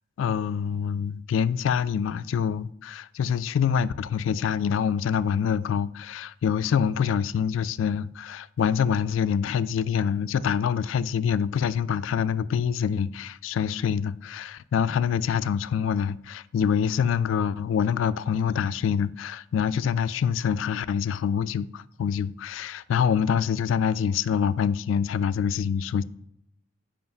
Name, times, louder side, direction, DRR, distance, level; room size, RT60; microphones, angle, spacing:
voice 1, 0.2-26.0, left 7 dB, 70° left, 0.3 m, -25 dB
5.6 x 5.2 x 5.4 m
head